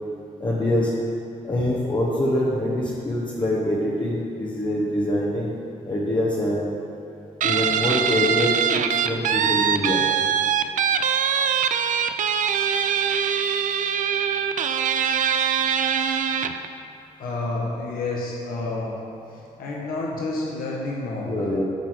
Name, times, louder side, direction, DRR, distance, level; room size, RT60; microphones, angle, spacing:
voice 1, 0.4-0.9 1.5-5.6 5.8-6.6 7.4-10.0 21.2-21.6, left 1 dB, 30° left, -6 dB, 1.4 m, -24 dB
Guitar, 7.4-16.7, right 8 dB, 55° right, 0.5 m, -23 dB
voice 2, 17.2-19.0 19.3-21.5, left 2 dB, 70° left, -3 dB, 1.3 m, -29 dB
8.9 x 4.0 x 6.4 m, 2.6 s
supercardioid pair, 55°, 16 cm